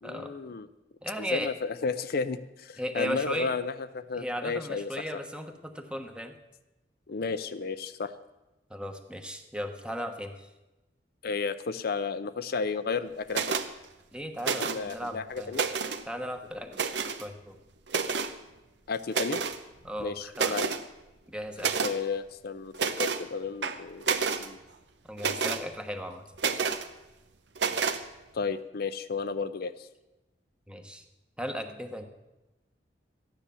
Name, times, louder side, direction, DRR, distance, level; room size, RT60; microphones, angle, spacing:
voice 1, 0.0-0.7 1.2-4.9 7.1-8.1 11.2-13.6 14.6-15.6 18.9-19.4 20.0-20.7 21.8-24.6 28.3-29.9, left 4 dB, 60° left, 12 dB, 0.6 m, -33 dB
voice 2, 1.0-1.5 2.8-3.5 4.2-6.3 8.7-10.5 14.1-15.6 16.1-16.8 17.2-17.6 19.8-20.6 21.3-21.7 25.1-26.2 30.7-31.0 31.4-32.0, equal, 5° right, 6 dB, 1.1 m, -36 dB
sound 1, 13.3-13.7 14.4-14.9 15.4-16.0 16.7-17.2 17.9-18.3 19.1-19.6 20.0-20.1 20.3-20.8 21.6-22.0 22.7-23.2 23.6-24.5 25.2-25.6 26.4-26.9 27.6-28.0, right 5 dB, 70° right, 0.9 m, -29 dB
14.0 x 9.9 x 7.0 m, 1.0 s
head